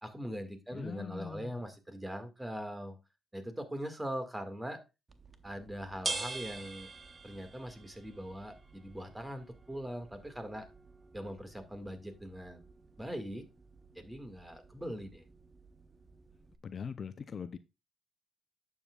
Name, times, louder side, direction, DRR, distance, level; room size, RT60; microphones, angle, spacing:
voice 1, 0.0-3.0 3.3-4.8 5.4-6.9 7.2-10.7 11.1-12.7 13.0-13.5 14.0-15.3, equal, 10° right, 1.9 m, -41 dB
voice 2, 0.7-1.6 16.6-17.6, left 6 dB, 45° left, 0.5 m, -41 dB
sound 1, 5.1-16.6, right 3 dB, 25° right, 0.8 m, -46 dB
10.5 x 7.2 x 2.4 m
cardioid pair, 90°, 0 cm